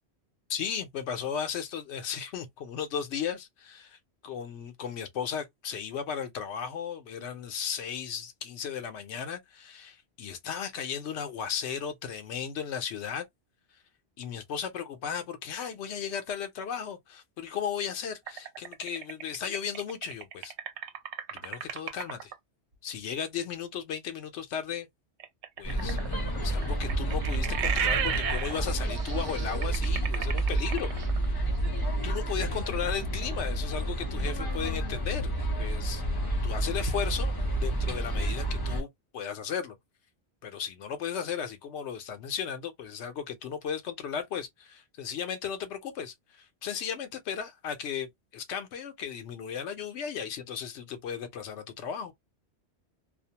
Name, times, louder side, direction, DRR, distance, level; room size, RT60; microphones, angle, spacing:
voice 1, 0.5-13.3 14.2-20.5 21.3-22.3 22.8-24.9 25.6-26.0 26.4-30.9 32.0-36.0 36.4-37.3 37.6-39.8 40.4-52.1, left 7 dB, 85° left, 0.9 m, -35 dB
sound 1, 18.3-22.3 25.2-31.3, right 8 dB, 90° right, 0.9 m, -34 dB
sound 2, 25.6-38.8, right 1 dB, 25° left, 0.7 m, -30 dB
2.3 x 2.1 x 2.7 m
omnidirectional pair, 1.1 m